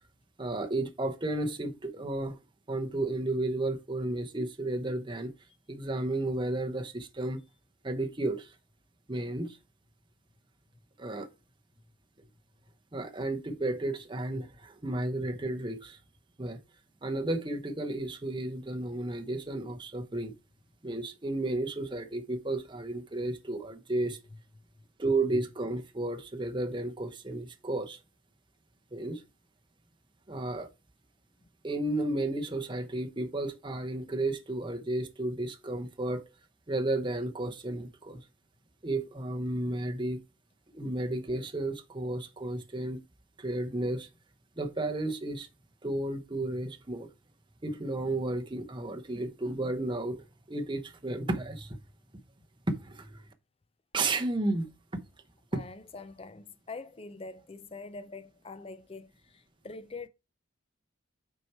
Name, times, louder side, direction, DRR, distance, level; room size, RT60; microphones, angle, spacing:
voice 1, 0.4-2.4 2.7-5.3 5.7-7.4 7.8-8.5 9.1-9.6 11.0-11.3 12.9-16.0 16.4-16.6 17.0-20.3 20.8-24.2 25.0-28.0 28.9-29.2 30.3-30.7 31.6-36.2 36.7-38.2 38.8-40.2 40.7-43.0 43.4-44.1 44.6-45.5 45.8-47.1 47.6-50.2 50.5-51.8 52.7-53.2 53.9-55.0 55.5-55.6, right 2 dB, 25° right, 0.8 m, -33 dB
voice 2, 55.5-60.1, left 3 dB, 25° left, 0.4 m, -44 dB
6.2 x 4.7 x 4.3 m
head